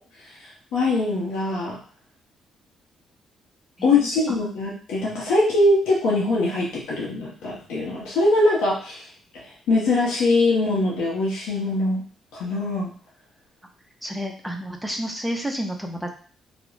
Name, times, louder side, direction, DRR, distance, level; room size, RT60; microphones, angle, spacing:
voice 1, 0.7-1.8 3.8-9.0 9.3-12.0 12.3-12.9, left 2 dB, 90° left, -5 dB, 0.7 m, -22 dB
voice 2, 3.8-4.1 14.0-16.1, equal, 5° right, 2 dB, 0.5 m, -30 dB
2.3 x 2.0 x 3.1 m, 0.42 s
cardioid pair, 90°, 0 cm